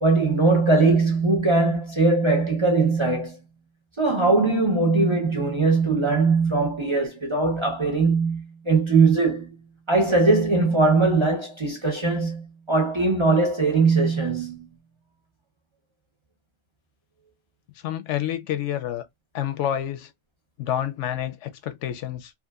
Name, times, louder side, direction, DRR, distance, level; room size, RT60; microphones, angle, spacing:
voice 1, 0.0-3.4 4.0-9.5 9.9-14.6, right 3 dB, 30° right, 0.6 m, -20 dB
voice 2, 17.8-19.1 19.3-20.1 20.6-22.3, left 11 dB, 80° left, 0.9 m, -28 dB
2.8 x 2.4 x 2.3 m
omnidirectional pair, 1.2 m